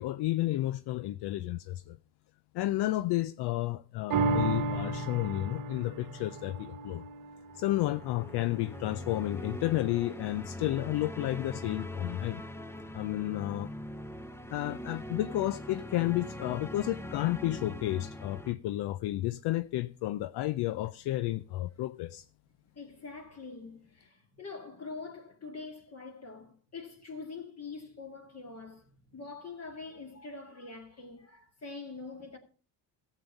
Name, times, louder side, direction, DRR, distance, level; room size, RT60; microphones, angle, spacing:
voice 1, 0.0-2.0 2.5-7.0 7.5-12.4 12.9-13.7 14.5-22.3, left 16 dB, 70° left, 0.5 m, -32 dB
sound 1, 4.1-10.8 11.2-11.3, right 3 dB, 50° right, 1.1 m, -35 dB
sound 2, 7.5-18.5, left 1 dB, 5° left, 0.7 m, -42 dB
voice 2, 22.7-32.4, left 4 dB, 35° left, 2.1 m, -44 dB
13.5 x 7.3 x 5.2 m
cardioid pair, 85°, 43 cm